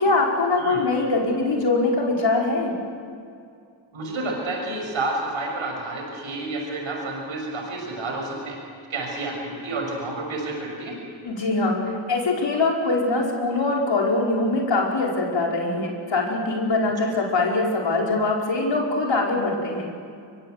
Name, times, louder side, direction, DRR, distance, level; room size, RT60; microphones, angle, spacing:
voice 1, 0.0-2.7 11.2-11.8 12.1-20.0, left 3 dB, 65° left, -1 dB, 5.0 m, -23 dB
voice 2, 3.9-8.6 8.9-10.9, right 2 dB, 85° right, 0 dB, 6.4 m, -30 dB
23.0 x 23.0 x 8.0 m, 2.3 s
cardioid pair, 60°, 46 cm